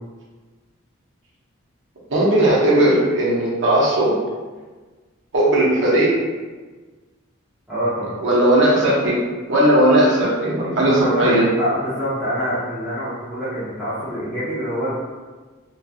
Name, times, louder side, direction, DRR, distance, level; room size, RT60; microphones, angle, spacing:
voice 1, 2.1-4.2 5.3-6.1 8.2-9.2 9.5-11.5, right 1 dB, 60° right, -6 dB, 0.7 m, -17 dB
voice 2, 7.7-8.1 10.9-14.9, equal, ahead, -14 dB, 0.5 m, -25 dB
2.5 x 2.3 x 2.6 m, 1.4 s
head